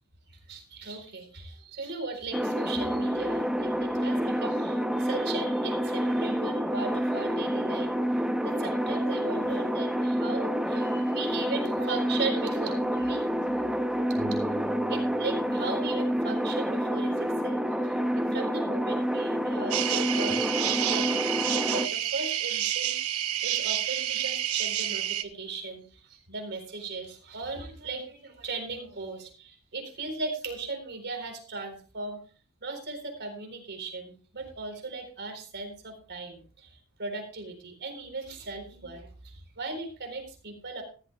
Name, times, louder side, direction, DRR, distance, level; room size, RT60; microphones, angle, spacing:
voice 1, 0.3-7.9 8.4-13.7 14.3-14.4 14.9-20.4 20.8-32.2 32.6-40.8, right 3 dB, 50° right, 4 dB, 4.1 m, -38 dB
sound 1, 2.3-21.9, equal, 5° right, 0.7 m, -28 dB
sound 2, 14.1-18.6, right 2 dB, 25° right, 2.5 m, -42 dB
sound 3, 19.7-25.2, right 11 dB, 70° right, 1.0 m, -29 dB
15.5 x 14.0 x 2.3 m, 0.37 s
head